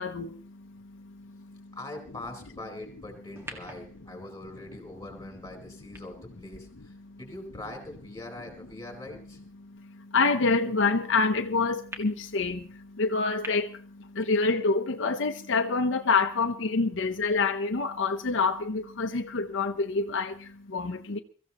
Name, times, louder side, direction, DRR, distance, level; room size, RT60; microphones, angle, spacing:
voice 1, 0.0-1.8 7.0-7.2 9.6-21.2, left 4 dB, 65° left, 0.8 m, -27 dB
voice 2, 1.7-9.4, left 2 dB, 15° left, 4.3 m, -42 dB
sound 1, 3.4-7.8 8.4-8.5 11.9-12.0 13.4-13.5, equal, 10° right, 1.7 m, -47 dB
23.5 x 15.0 x 3.0 m
head